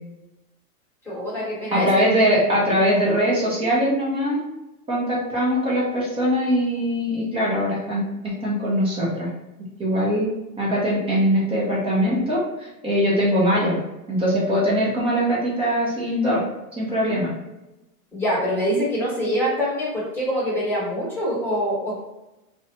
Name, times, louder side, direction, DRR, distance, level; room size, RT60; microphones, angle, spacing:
voice 1, 1.0-2.0 18.1-22.0, equal, 5° left, -8 dB, 1.2 m, -25 dB
voice 2, 1.7-4.4 4.9-9.3 9.8-10.3 10.6-13.8 14.1-16.4 16.8-17.3, equal, 15° right, -6 dB, 0.5 m, -21 dB
2.5 x 2.2 x 2.7 m, 0.97 s
hypercardioid pair, 125°, 45 cm